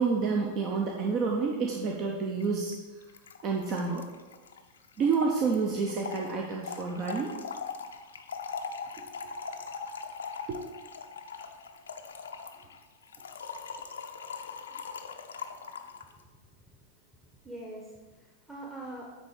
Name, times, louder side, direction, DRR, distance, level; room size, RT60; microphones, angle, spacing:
voice 1, 0.0-2.7 3.4-4.0 5.0-7.3 10.5-10.6, right 5 dB, 35° right, 0 dB, 0.8 m, -29 dB
Trickle dribble / Fill (with liquid), 2.4-2.5 2.7-2.8 3.0-16.1, left 5 dB, 65° left, 0.5 m, -41 dB
voice 2, 15.9-16.4 17.4-19.0, right 1 dB, 10° right, -3 dB, 1.1 m, -44 dB
9.5 x 4.1 x 4.8 m, 1.3 s
figure-of-eight pair, 90°, 0 cm